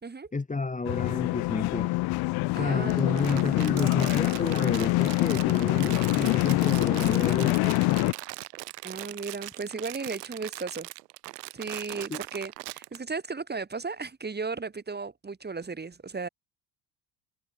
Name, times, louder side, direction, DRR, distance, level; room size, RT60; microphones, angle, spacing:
voice 1, 0.3-1.9 2.6-7.8 12.1-12.2, left 3 dB, 15° left, 2.1 m, -30 dB
sound 1, 0.8-8.1, left 23 dB, 55° left, 0.5 m, -25 dB
voice 2, 2.5-3.5 8.8-10.9 11.5-16.3, right 4 dB, 20° right, 2.7 m, -35 dB
Crumpling crinkling, 2.9-13.0, right 20 dB, 85° right, 5.8 m, -40 dB
hypercardioid pair, 75°, 47 cm